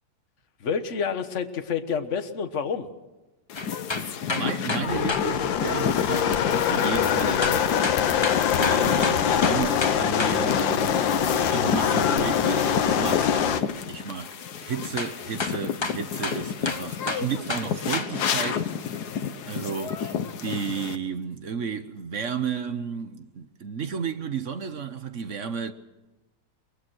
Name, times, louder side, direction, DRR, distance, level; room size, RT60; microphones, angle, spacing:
voice 1, 0.6-2.9, left 6 dB, 45° left, 1.5 m, -28 dB
sound 1, 3.5-21.0, left 7 dB, 60° left, 1.5 m, -31 dB
sound 2, 3.6-5.3 7.4-10.4 15.0-15.1 15.4-18.1 18.4-18.6, left 3 dB, 20° left, 0.8 m, -30 dB
voice 2, 4.0-7.7 8.6-11.2 11.5-19.0 19.5-25.7, right 6 dB, 50° right, 1.1 m, -33 dB
sound 3, 4.9-13.6, left 8 dB, 90° left, 1.7 m, -23 dB
23.5 x 21.0 x 6.3 m
omnidirectional pair, 2.0 m